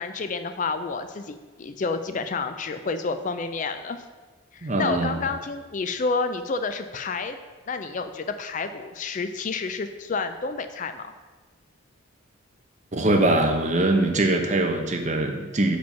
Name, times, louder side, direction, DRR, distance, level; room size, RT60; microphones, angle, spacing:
voice 1, 0.0-4.0 4.5-7.4 7.7-11.1, left 4 dB, 35° left, 9 dB, 0.3 m, -29 dB
voice 2, 4.6-5.2 12.9-15.8, right 2 dB, 35° right, 3 dB, 0.8 m, -22 dB
7.0 x 5.1 x 5.7 m, 1.3 s
head